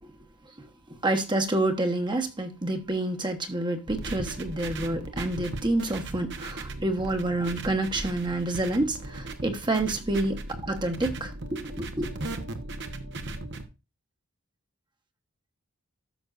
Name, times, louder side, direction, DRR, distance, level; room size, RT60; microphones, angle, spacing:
voice 1, 1.0-10.4 10.7-12.1, right 2 dB, 20° right, 1.2 m, -28 dB
sound 1, 3.9-13.6, right 2 dB, 55° right, 1.1 m, -37 dB
13.0 x 6.2 x 2.5 m
head